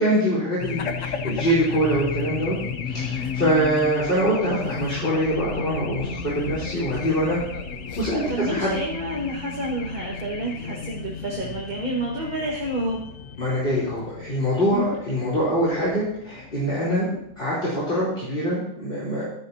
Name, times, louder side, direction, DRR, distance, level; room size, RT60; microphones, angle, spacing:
voice 1, 0.0-2.5 2.9-7.4 8.0-8.7 13.4-19.2, equal, 35° left, -7 dB, 4.0 m, -24 dB
Race car auto racing / Alarm, 0.6-17.5, left 6 dB, 55° left, 1.2 m, -33 dB
voice 2, 8.3-13.0 14.7-14.9, right 1 dB, 30° right, -3 dB, 1.9 m, -29 dB
15.0 x 13.0 x 2.9 m, 0.77 s
omnidirectional pair, 1.7 m